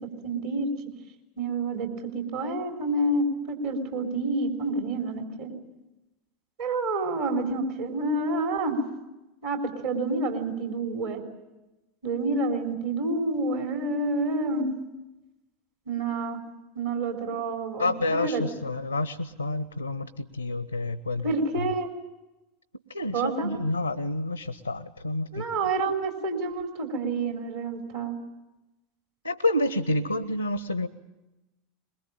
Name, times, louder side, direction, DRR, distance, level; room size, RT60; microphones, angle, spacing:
voice 1, 0.2-0.7 1.4-5.5 6.6-8.8 9.4-11.2 12.0-14.7 15.9-16.4 16.7-18.4 21.2-21.9 23.1-23.5 25.3-28.2, right 2 dB, 60° right, 3 dB, 3.9 m, -28 dB
voice 2, 17.8-21.3 22.9-25.4 29.2-30.9, left 2 dB, 85° left, 17 dB, 0.7 m, -29 dB
22.5 x 21.5 x 8.7 m, 1.0 s
figure-of-eight pair, 80°, 0 cm